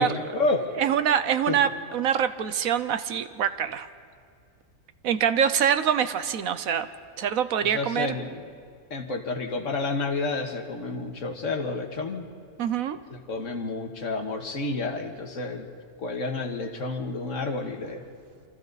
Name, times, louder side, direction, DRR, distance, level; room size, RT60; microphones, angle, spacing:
voice 1, 0.0-0.7 1.5-1.7 7.6-8.4 8.9-12.3 13.1-15.7 16.0-18.0, left 3 dB, 50° left, 3 dB, 1.9 m, -30 dB
voice 2, 0.8-3.9 5.0-6.9 7.2-8.1 12.6-13.0, right 8 dB, 65° right, 12 dB, 1.1 m, -25 dB
28.0 x 25.0 x 4.1 m, 2.2 s
omnidirectional pair, 1.7 m